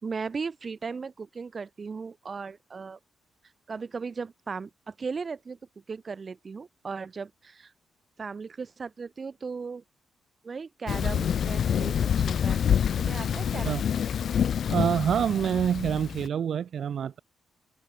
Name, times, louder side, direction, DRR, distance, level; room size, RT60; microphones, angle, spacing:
voice 1, 0.0-3.0 3.7-5.6 5.9-7.7 8.2-9.8 10.4-12.6 13.0-13.8, right 5 dB, 40° right, 4.0 m, -37 dB
Thunder, 10.9-16.3, left 8 dB, 65° left, 1.1 m, -27 dB
voice 2, 14.7-17.2, right 8 dB, 65° right, 1.3 m, -26 dB
cardioid pair, 70°, 0 cm